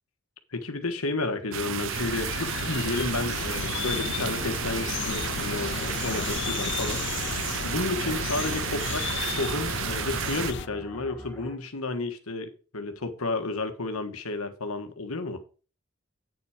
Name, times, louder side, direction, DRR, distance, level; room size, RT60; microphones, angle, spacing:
voice 1, 0.5-15.4, left 3 dB, 85° left, 1.5 m, -32 dB
sound 1, 1.5-10.5, right 9 dB, 60° right, 0.4 m, -32 dB
sound 2, 1.9-10.7, left 7 dB, 55° left, 0.5 m, -33 dB
sound 3, 5.5-11.6, left 1 dB, 10° left, 1.9 m, -45 dB
8.6 x 7.3 x 5.0 m
head